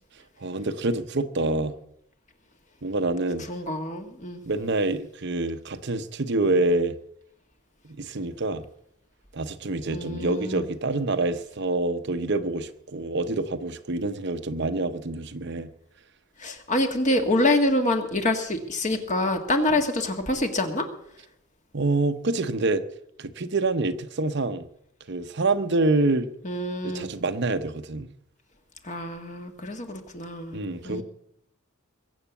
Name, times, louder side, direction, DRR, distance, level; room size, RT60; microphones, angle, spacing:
voice 1, 0.4-1.8 2.8-3.5 4.5-7.0 8.0-8.6 9.3-15.7 19.7-19.8 21.7-22.8 23.2-24.7 25.1-26.3 26.8-28.1 30.5-31.0, right 2 dB, 55° right, 0.8 m, -26 dB
voice 2, 3.5-4.4 9.9-10.6 16.4-20.9 26.4-27.1 28.8-31.0, left 1 dB, 35° left, 1.8 m, -26 dB
22.0 x 8.0 x 7.1 m
head